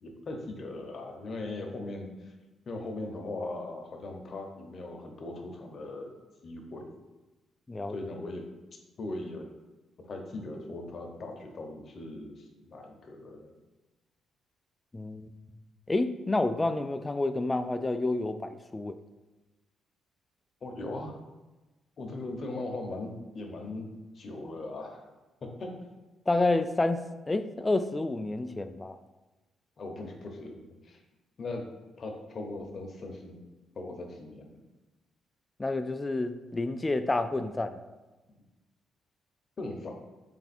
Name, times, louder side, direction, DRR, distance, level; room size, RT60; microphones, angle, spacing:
voice 1, 0.0-2.3 2.7-6.2 6.4-6.9 7.9-8.5 9.0-9.5 10.0-13.5 20.6-21.2 22.0-23.9 24.1-25.0 25.4-25.7 29.8-31.0 31.4-31.6 32.0-33.4 33.8-34.6 39.6-39.9, left 2 dB, 45° left, 3 dB, 0.8 m, -39 dB
voice 2, 14.9-15.3 15.9-19.0 26.3-27.0 27.3-29.0 35.6-37.8, left 2 dB, 20° left, 10 dB, 0.3 m, -29 dB
3.5 x 3.4 x 4.2 m, 1.1 s
cardioid pair, 90°, 0 cm